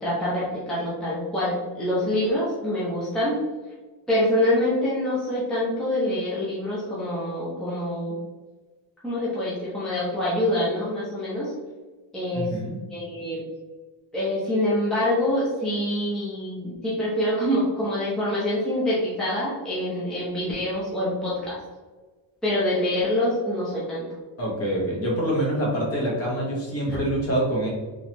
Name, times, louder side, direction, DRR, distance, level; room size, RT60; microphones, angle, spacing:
voice 1, 0.0-3.4 4.1-8.2 9.0-11.5 12.1-12.5 12.9-13.4 14.1-21.6 22.4-24.0 26.9-27.0, left 1 dB, ahead, -9 dB, 0.7 m, -25 dB
voice 2, 12.3-12.8 24.4-27.7, right 1 dB, 30° left, -4 dB, 1.1 m, -25 dB
3.7 x 3.0 x 2.9 m, 1.3 s
cardioid pair, 175°, 46 cm